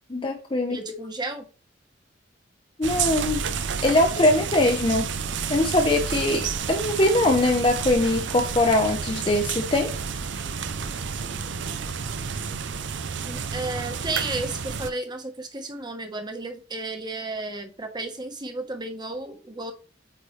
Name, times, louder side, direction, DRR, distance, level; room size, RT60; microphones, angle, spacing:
voice 1, 0.1-1.0 2.8-3.4 3.8-5.1 5.5-9.9, left 1 dB, 25° left, 2 dB, 0.8 m, -22 dB
voice 2, 0.7-1.5 13.3-19.7, right 2 dB, 25° right, 5 dB, 1.2 m, -33 dB
sound 1, 2.8-14.9, right 6 dB, 70° right, 0.6 m, -30 dB
8.7 x 4.5 x 3.2 m, 0.37 s
head